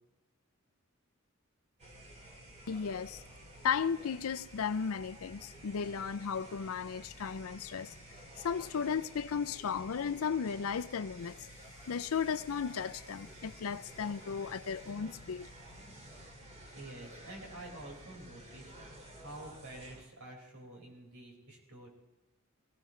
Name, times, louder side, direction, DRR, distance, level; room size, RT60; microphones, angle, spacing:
sound 1, 1.8-20.0, right 1 dB, 30° right, 2.6 m, -52 dB
voice 1, 2.7-3.2 3.6-8.0 8.4-11.5 11.9-15.5, left 6 dB, 70° left, 0.5 m, -35 dB
voice 2, 16.7-21.9, right 1 dB, 90° right, 5.1 m, -49 dB
20.0 x 17.0 x 3.2 m
head